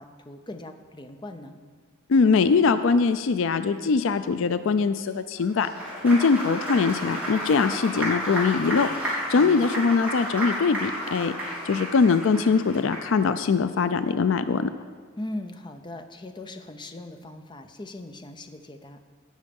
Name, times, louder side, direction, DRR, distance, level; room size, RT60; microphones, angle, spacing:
voice 1, 0.0-1.6 9.4-9.7 15.2-19.0, left 1 dB, 20° left, 7 dB, 0.7 m, -39 dB
voice 2, 2.1-5.7 6.0-11.3 11.6-14.7, left 4 dB, 65° left, 11 dB, 0.4 m, -22 dB
Applause, 5.5-13.3, equal, 5° right, 3.4 m, -32 dB
17.0 x 6.2 x 5.3 m, 1.5 s
head